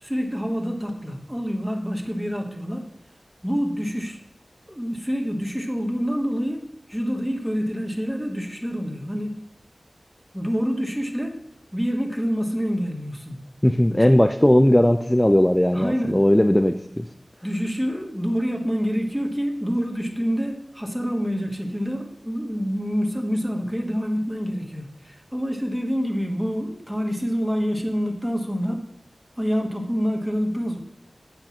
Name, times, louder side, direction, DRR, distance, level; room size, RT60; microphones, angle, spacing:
voice 1, 0.0-2.9 3.4-4.2 4.7-9.4 10.3-11.4 11.7-13.4 15.7-16.2 17.4-28.8 29.4-30.8, equal, 10° right, 2 dB, 1.5 m, -27 dB
voice 2, 13.6-17.1, left 1 dB, 15° left, 6 dB, 0.5 m, -18 dB
7.9 x 4.5 x 7.2 m, 0.78 s
wide cardioid pair, 50°, 0 cm